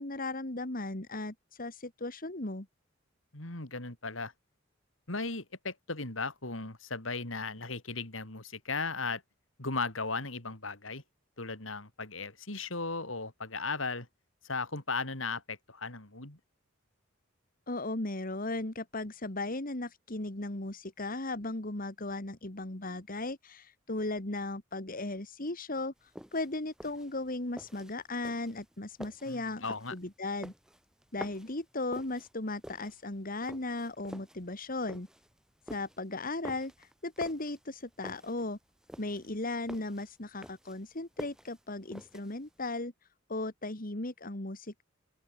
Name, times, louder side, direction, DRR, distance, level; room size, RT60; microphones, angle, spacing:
voice 1, 0.0-2.7 17.7-29.6 29.9-30.5 31.1-35.1 35.7-38.6 39.0-42.9 43.3-44.8, left 2 dB, 45° left, 2.3 m, -36 dB
voice 2, 3.3-4.3 5.1-9.2 9.6-11.0 11.4-14.1 14.4-16.4 29.3-29.9, left 3 dB, 75° left, 4.2 m, -36 dB
sound 1, 26.0-42.6, equal, 5° right, 2.6 m, -49 dB
open air
head